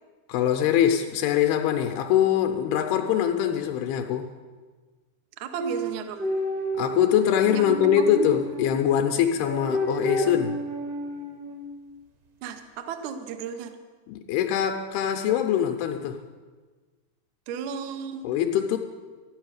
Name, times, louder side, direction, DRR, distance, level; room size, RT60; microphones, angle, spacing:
voice 1, 0.3-4.3 6.8-10.6 14.1-16.2 18.2-18.8, left 10 dB, 90° left, 5 dB, 2.6 m, -23 dB
voice 2, 5.4-6.3 7.5-8.3 12.4-13.8 17.5-18.3, right 7 dB, 75° right, 7 dB, 1.8 m, -35 dB
sound 1, 5.6-8.7 9.4-11.7, equal, 55° right, 1.8 m, -30 dB
13.5 x 9.5 x 6.5 m, 1.4 s
omnidirectional pair, 4.4 m